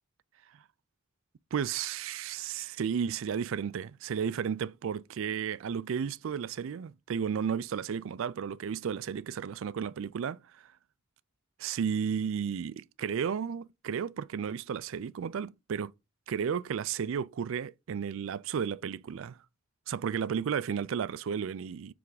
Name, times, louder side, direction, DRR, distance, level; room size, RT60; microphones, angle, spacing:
voice 1, 1.5-10.7 11.6-15.9 16.3-19.4 19.9-21.9, right 7 dB, 65° right, 0.3 m, -33 dB
7.1 x 3.4 x 4.8 m
head